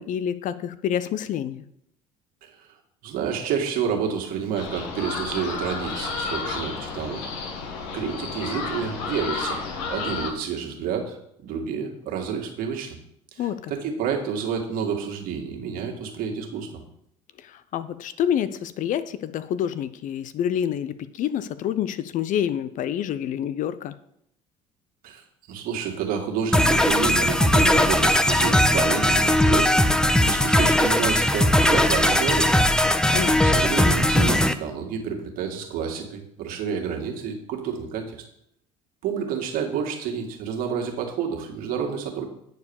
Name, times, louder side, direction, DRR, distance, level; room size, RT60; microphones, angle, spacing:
voice 1, 0.0-1.6 13.4-13.7 17.4-23.9 33.1-33.4, left 9 dB, 50° left, 14 dB, 0.7 m, -27 dB
voice 2, 3.0-7.2 7.9-9.6 9.9-13.0 13.3-16.8 25.0-29.8 30.2-32.5 33.4-38.2 39.0-42.2, right 6 dB, 60° right, 2 dB, 2.2 m, -29 dB
sound 1, 4.5-10.3, left 4 dB, 75° left, 1.8 m, -31 dB
sound 2, 26.5-34.5, left 1 dB, 5° left, 0.7 m, -19 dB
9.2 x 4.7 x 7.2 m, 0.74 s
hypercardioid pair, 75°, 16 cm